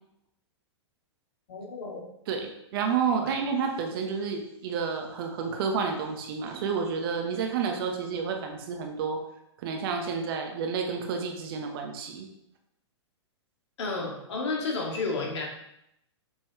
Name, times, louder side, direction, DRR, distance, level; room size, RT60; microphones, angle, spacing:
voice 1, 1.5-2.0 3.2-3.3 13.8-15.4, left 3 dB, 70° left, -2 dB, 2.4 m, -32 dB
voice 2, 2.3-9.2 9.6-12.3, right 5 dB, 50° right, 4 dB, 1.4 m, -30 dB
7.1 x 6.0 x 3.3 m, 0.80 s
hypercardioid pair, 110°, 15 cm